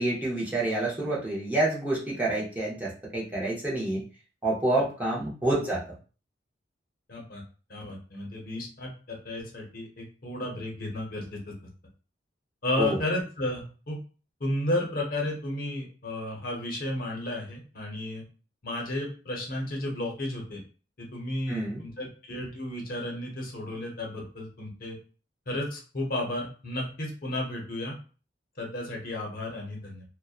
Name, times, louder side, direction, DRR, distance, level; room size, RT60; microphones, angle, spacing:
voice 1, 0.0-4.0 4.4-5.8 12.8-13.0 21.5-21.8, right 2 dB, 10° right, -5 dB, 0.6 m, -28 dB
voice 2, 7.1-7.4 7.7-11.5 12.6-14.0 14.4-18.2 18.6-20.6 21.0-25.0 25.5-27.9 28.6-30.0, left 1 dB, 50° left, 0 dB, 0.7 m, -33 dB
2.5 x 2.1 x 2.3 m, 0.36 s
head